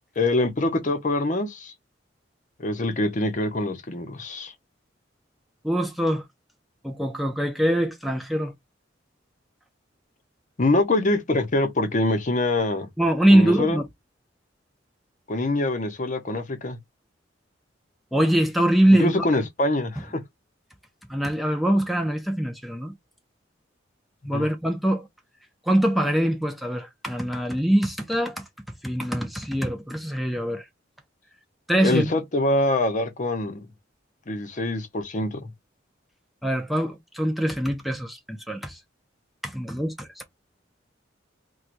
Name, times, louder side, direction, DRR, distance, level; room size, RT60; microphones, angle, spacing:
voice 1, 0.2-1.7 2.6-4.5 10.6-12.9 13.3-13.8 15.3-16.8 19.0-20.2 24.3-24.5 31.8-33.7 34.3-35.5, left 2 dB, 40° left, 0.7 m, -24 dB
voice 2, 5.6-6.2 6.8-8.5 13.0-13.8 18.1-19.1 21.1-22.9 24.2-25.1 25.7-28.4 28.8-30.6 31.7-32.1 36.4-38.8 39.4-40.2, right 1 dB, ahead, 0.4 m, -23 dB
4.4 x 2.3 x 2.5 m
head